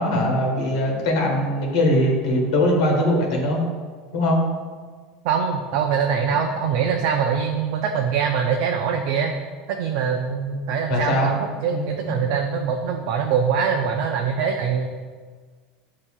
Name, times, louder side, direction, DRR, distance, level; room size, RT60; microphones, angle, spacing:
voice 1, 0.0-3.6 4.1-4.4 10.9-11.3 11.7-12.3, left 1 dB, 90° left, 0 dB, 1.2 m, -21 dB
voice 2, 5.2-9.3 9.7-14.9, right 6 dB, 60° right, 2 dB, 0.3 m, -23 dB
7.2 x 2.7 x 2.3 m, 1.5 s
supercardioid pair, 150°, 3 cm